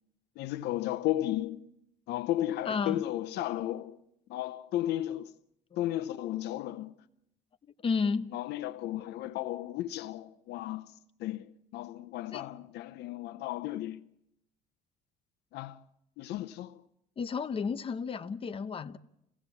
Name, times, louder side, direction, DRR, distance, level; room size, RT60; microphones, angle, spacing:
voice 1, 0.4-1.7 2.1-4.0 4.3-5.3 5.8-7.0 8.3-14.0 15.5-15.8 16.2-16.8, left 14 dB, 80° left, 0.8 m, -34 dB
voice 2, 2.7-3.0 7.8-8.3 12.3-12.4 17.2-19.0, left 5 dB, 35° left, 0.9 m, -32 dB
27.5 x 16.5 x 7.1 m
cardioid pair, 110°, 17 cm